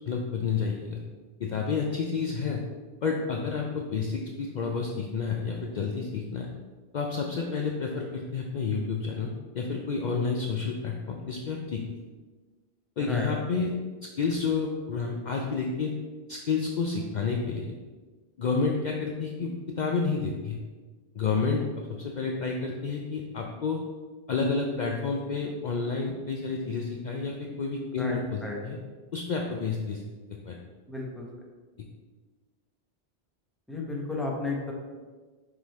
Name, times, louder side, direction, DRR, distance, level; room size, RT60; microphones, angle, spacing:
voice 1, 0.1-1.0 1.4-2.6 3.0-6.5 6.9-11.9 13.0-13.7 14.2-15.9 16.3-17.7 18.4-20.6 21.1-23.8 24.3-28.8 29.1-30.0 30.3-30.6, left 4 dB, 55° left, 0 dB, 0.6 m, -30 dB
voice 2, 13.0-13.3 28.0-28.6 30.9-31.3 33.7-34.7, left 3 dB, ahead, -2 dB, 1.0 m, -33 dB
6.1 x 3.9 x 4.2 m, 1.4 s
omnidirectional pair, 1.1 m